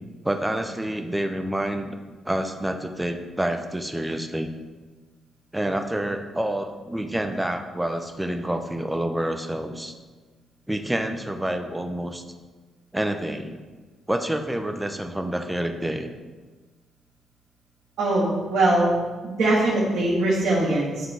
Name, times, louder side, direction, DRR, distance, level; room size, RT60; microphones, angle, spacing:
voice 1, 0.2-2.0 2.2-4.5 5.5-9.9 10.7-12.2 12.9-13.6 14.1-16.1, right 1 dB, 10° right, 6 dB, 0.6 m, -28 dB
voice 2, 18.0-18.9 19.2-21.0, right 2 dB, 70° right, -8 dB, 1.5 m, -21 dB
9.5 x 3.6 x 3.4 m, 1.3 s
supercardioid pair, 60°, 0 cm